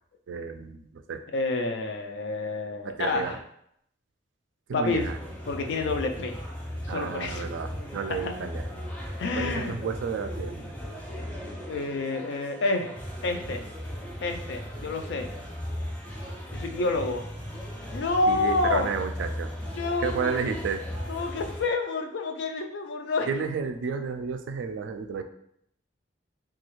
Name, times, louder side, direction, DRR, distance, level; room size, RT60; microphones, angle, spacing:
voice 1, 0.3-1.2 2.8-3.4 4.7-5.2 6.9-8.6 9.3-10.7 18.3-19.5 20.0-20.8 23.3-25.2, right 5 dB, 80° right, 8 dB, 0.3 m, -31 dB
voice 2, 1.3-3.4 4.7-5.1 5.5-6.4 6.8-7.5 8.1-8.3 9.2-9.8 11.7-12.9 13.2-13.6 14.2-15.3 16.5-17.3 17.9-18.9 19.7-20.5 21.1-23.3, left 3 dB, 70° left, 4 dB, 0.4 m, -28 dB
sound 1, 4.9-21.6, equal, 10° left, 0.5 m, -37 dB
3.1 x 2.3 x 3.0 m, 0.72 s
head